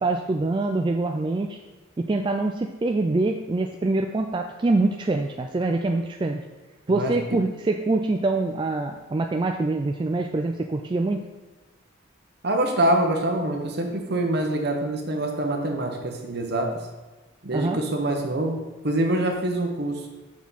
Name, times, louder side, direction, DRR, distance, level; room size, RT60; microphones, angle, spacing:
voice 1, 0.0-1.6 2.0-6.4 6.9-11.2 17.5-17.8, right 2 dB, 25° right, 3 dB, 0.3 m, -25 dB
voice 2, 6.9-7.4 12.4-16.7 17.4-18.6 18.8-20.1, right 1 dB, 55° right, 3 dB, 1.0 m, -25 dB
6.2 x 5.8 x 4.1 m, 1.2 s
head